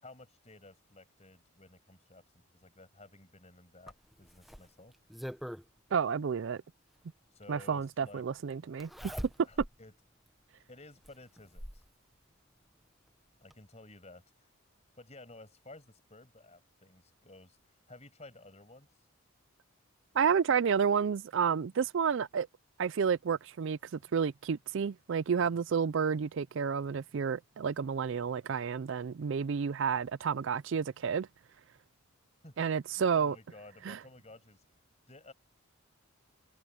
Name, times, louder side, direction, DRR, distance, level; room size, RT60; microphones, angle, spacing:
voice 1, 0.0-4.9 7.3-8.2 9.4-9.9 10.7-11.8 13.4-14.5 15.0-18.9 25.4-25.6 32.4-34.6 35.1-35.3, left 2 dB, 30° left, 6.3 m, -54 dB
Zipper (clothing), 3.9-5.7 7.1-7.2 8.8-9.8 10.3-10.4 11.0-11.9 13.1-13.2 13.5-13.6, equal, ahead, 1.0 m, -43 dB
voice 2, 5.9-6.6 7.5-9.1 20.1-22.5 22.8-23.8 24.1-31.3 32.6-33.4 33.8-34.0, right 6 dB, 55° right, 0.4 m, -30 dB
open air
head